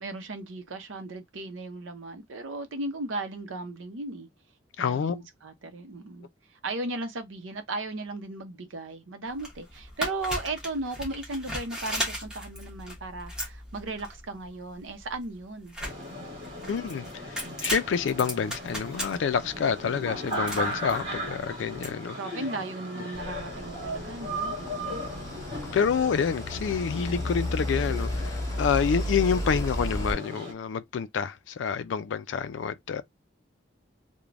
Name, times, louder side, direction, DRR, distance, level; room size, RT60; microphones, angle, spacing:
voice 1, 0.0-4.3 4.8-6.3 6.6-15.8 22.1-25.0, right 2 dB, 85° right, 0.6 m, -36 dB
voice 2, 4.8-5.2 16.7-22.2 25.7-33.0, left 6 dB, 75° left, 0.3 m, -28 dB
sound 1, 9.3-21.9, equal, 5° right, 0.9 m, -37 dB
sound 2, 15.8-30.5, equal, 30° right, 1.4 m, -37 dB
sound 3, 23.1-30.1, left 1 dB, 20° left, 0.5 m, -33 dB
3.2 x 2.1 x 2.4 m
head